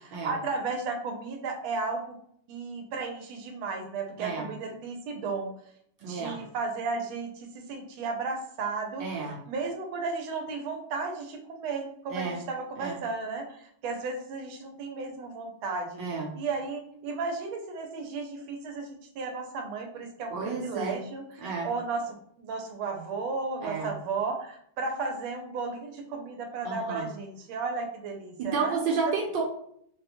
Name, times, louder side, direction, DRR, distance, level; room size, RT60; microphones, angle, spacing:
voice 1, 0.2-2.0 2.5-5.5 6.0-9.0 9.5-16.0 16.3-18.9 19.2-22.0 22.4-28.9, right 4 dB, 90° right, 3 dB, 1.5 m, -34 dB
voice 2, 4.2-4.5 6.0-6.4 9.0-9.4 12.1-12.4 12.8-13.0 16.0-16.3 20.3-21.0 21.4-21.7 23.6-23.9 26.6-27.1 28.4-29.4, right 4 dB, 70° right, -2 dB, 1.3 m, -31 dB
3.9 x 2.1 x 2.9 m, 0.68 s
omnidirectional pair, 2.2 m